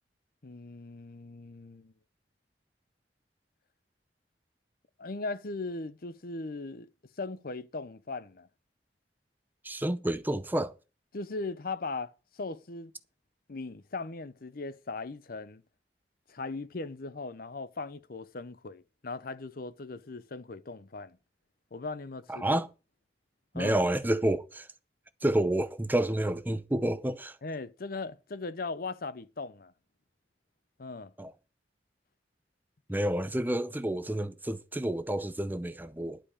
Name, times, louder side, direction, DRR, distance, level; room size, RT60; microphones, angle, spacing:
voice 1, 0.4-1.9 5.0-6.9 7.2-8.5 11.1-12.9 13.5-15.6 16.3-21.2 21.7-22.6 23.5-23.8 27.4-29.7 30.8-31.1, left 3 dB, 55° left, 0.7 m, -38 dB
voice 2, 9.6-10.7 22.3-22.7 23.5-24.7 25.2-27.4 31.2-31.3 32.9-36.2, right 1 dB, 10° right, 0.6 m, -29 dB
11.5 x 4.9 x 8.4 m
head